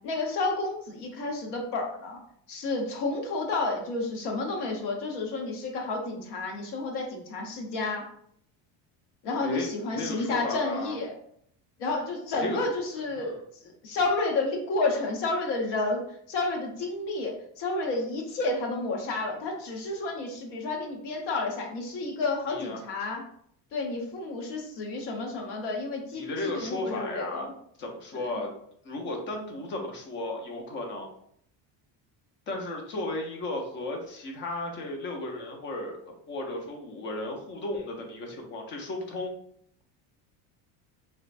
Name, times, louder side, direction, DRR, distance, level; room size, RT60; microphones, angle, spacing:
voice 1, 0.0-2.2 2.5-8.1 9.2-11.1 11.8-13.3 13.6-23.2 23.7-27.5 28.1-28.2, left 3 dB, 75° left, 1 dB, 1.0 m, -31 dB
voice 2, 9.4-10.9 12.4-12.7 13.1-13.4 22.5-22.8 26.1-27.5 27.8-28.5 28.8-31.1 32.5-36.0 36.3-39.3, left 2 dB, 30° left, 2 dB, 0.5 m, -34 dB
3.2 x 3.0 x 2.5 m, 0.67 s
cardioid pair, 175°, 41 cm